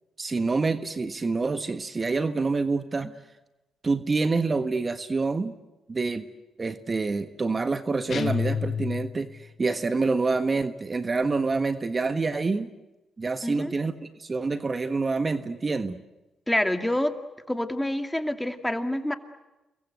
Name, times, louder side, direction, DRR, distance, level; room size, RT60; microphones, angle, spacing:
voice 1, 0.2-3.2 3.8-5.6 5.9-6.3 6.6-12.7 13.2-13.9 14.2-16.0, right 3 dB, 35° right, 10 dB, 1.5 m, -27 dB
sound 1, 8.1-9.5, left 7 dB, 55° left, 1.0 m, -29 dB
voice 2, 13.4-13.7 16.5-17.1 17.5-19.1, left 1 dB, 10° left, 7 dB, 2.4 m, -27 dB
28.5 x 22.5 x 8.1 m, 1.0 s
supercardioid pair, 50°, 0 cm